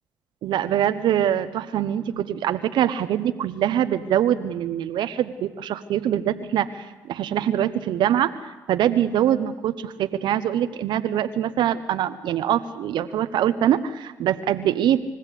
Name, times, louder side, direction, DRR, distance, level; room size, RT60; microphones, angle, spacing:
voice 1, 0.4-8.3 8.7-15.0, right 10 dB, 75° right, 10 dB, 0.9 m, -23 dB
29.0 x 15.0 x 8.4 m, 1.2 s
supercardioid pair, 55°, 8 cm